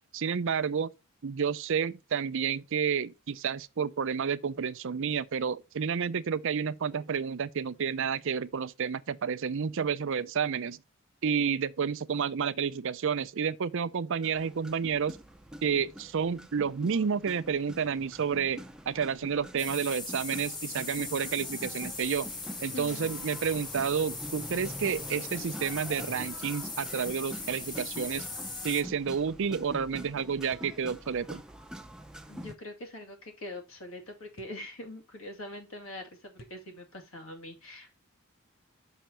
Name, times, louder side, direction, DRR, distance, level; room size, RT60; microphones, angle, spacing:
voice 1, 0.1-0.9 1.2-10.8 11.2-15.2 15.6-22.3 22.6-28.3 28.6-31.4, right 6 dB, 60° right, 0.5 m, -30 dB
sound 1, 14.2-32.5, equal, 5° right, 0.6 m, -45 dB
sound 2, 19.6-28.8, left 3 dB, 20° left, 1.4 m, -40 dB
voice 2, 22.7-23.2 32.3-38.0, left 1 dB, 70° left, 2.5 m, -43 dB
sound 3, 28.5-28.7 30.5-30.8 32.5-32.7 34.4-34.7 36.4-36.7, left 2 dB, 45° left, 0.9 m, -54 dB
6.3 x 5.7 x 4.4 m
head